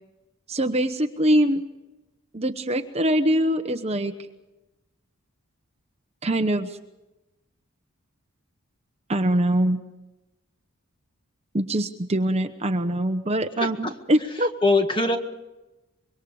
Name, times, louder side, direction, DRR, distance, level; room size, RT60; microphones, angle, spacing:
voice 1, 0.5-1.6 2.3-4.1 6.2-6.8 9.1-9.8 11.5-14.5, right 1 dB, 30° right, 7 dB, 1.0 m, -23 dB
voice 2, 13.6-13.9 14.4-15.2, left 2 dB, 20° left, 5 dB, 1.8 m, -22 dB
25.5 x 23.0 x 4.9 m, 1.0 s
head